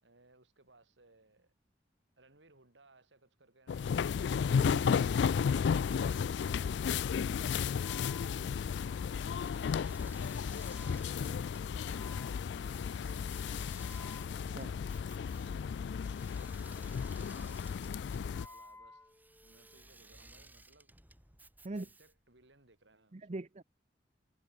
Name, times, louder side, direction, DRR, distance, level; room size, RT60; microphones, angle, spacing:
voice 1, 0.0-1.5 2.2-4.4 6.5-11.5 12.7-14.2 16.7-19.2 19.4-21.0 21.7-23.4, right 2 dB, 85° right, 3.9 m, -65 dB
sound 1, 3.7-18.5, left 6 dB, 70° left, 0.3 m, -33 dB
voice 2, 4.5-5.2 14.5-14.8 21.6-21.9 23.1-23.6, right 2 dB, 40° right, 0.7 m, -42 dB
Wind instrument woodwind instrument, 5.2-19.9, left 2 dB, 10° left, 2.5 m, -59 dB
Engine / Mechanisms, 9.5-22.3, right 2 dB, 10° right, 6.2 m, -58 dB
head